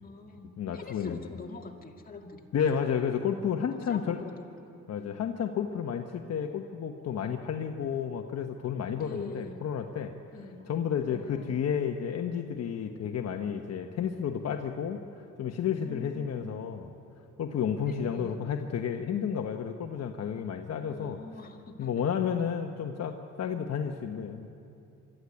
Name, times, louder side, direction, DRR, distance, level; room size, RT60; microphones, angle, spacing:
voice 1, 0.0-2.5 3.7-4.6 8.9-9.7 10.3-10.7 11.0-11.6 15.8-16.6 17.8-18.4 20.8-21.9, left 4 dB, 30° left, 1 dB, 2.2 m, -44 dB
voice 2, 0.6-1.2 2.5-4.2 4.9-10.1 10.7-16.9 17.4-21.2 21.8-24.5, left 7 dB, 55° left, 4 dB, 1.1 m, -31 dB
23.0 x 13.5 x 9.7 m, 2.7 s
cardioid pair, 90°, 30 cm